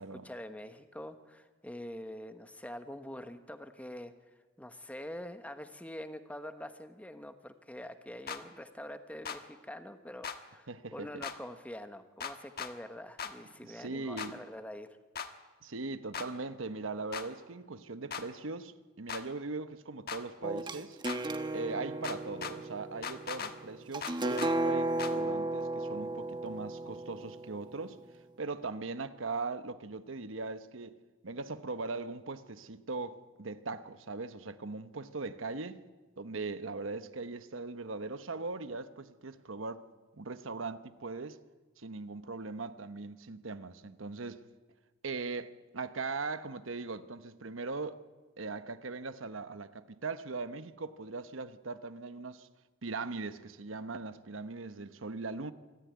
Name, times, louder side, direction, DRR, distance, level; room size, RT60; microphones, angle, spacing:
voice 1, 0.0-4.1 4.6-14.9, left 1 dB, 5° left, 1.2 m, -45 dB
sound 1, 8.3-8.4 9.2-9.4 10.2-10.4 11.2-11.4 12.2-12.7 13.2-13.3 14.2-14.3 15.2-15.3 16.1-16.3 17.1-17.3 18.1-18.2 19.1-19.2 20.1-20.2 21.1-21.2 22.0-22.5 23.0-23.5 24.0-24.5 25.0-25.1, left 6 dB, 50° left, 1.4 m, -38 dB
voice 2, 10.7-11.2 13.6-14.4 15.6-21.0 21.5-28.0 28.4-31.0 31.2-35.8 36.2-39.8 40.2-41.4 41.8-44.4 45.0-48.0 48.4-52.5 52.8-55.5, right 3 dB, 90° right, 1.1 m, -40 dB
sound 2, 20.4-28.1, right 2 dB, 25° right, 1.1 m, -35 dB
25.5 x 14.0 x 9.5 m
head